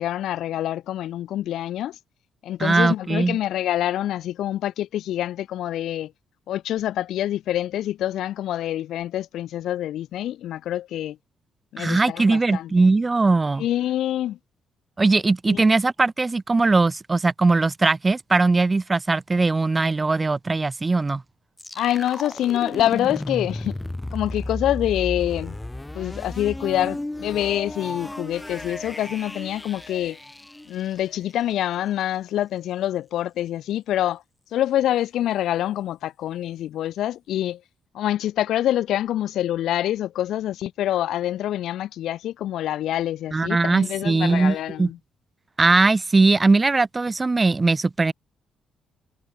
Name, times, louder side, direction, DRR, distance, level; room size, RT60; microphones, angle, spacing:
voice 1, 0.0-2.0 2.4-6.1 6.5-11.2 11.7-12.7 13.6-14.4 15.5-15.8 21.8-23.8 24.1-25.6 25.9-30.2 30.7-34.2 34.5-37.6 37.9-45.0, left 12 dB, 80° left, 2.1 m, -26 dB
voice 2, 2.6-3.4 11.8-13.6 15.0-21.2 43.3-44.9 45.6-48.1, right 3 dB, 25° right, 0.8 m, -20 dB
sound 1, 21.6-31.4, left 1 dB, 10° left, 3.4 m, -34 dB
cardioid pair, 90°, 0 cm